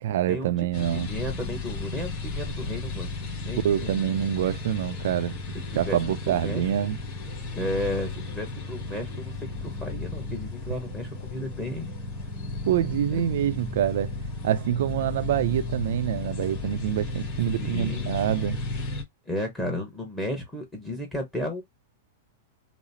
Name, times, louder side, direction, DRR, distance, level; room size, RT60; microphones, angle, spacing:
voice 1, 0.0-1.1 3.6-5.4 5.8-7.0 12.7-14.1 14.4-18.6, right 11 dB, 70° right, 0.4 m, -26 dB
sound 1, 0.7-19.0, left 3 dB, 30° left, 2.4 m, -34 dB
voice 2, 0.9-4.0 5.7-6.0 6.3-6.9 7.5-11.9 13.1-13.2 17.6-18.1 19.3-21.6, left 1 dB, 5° left, 1.0 m, -33 dB
5.0 x 2.0 x 2.7 m
supercardioid pair, 145°, 0 cm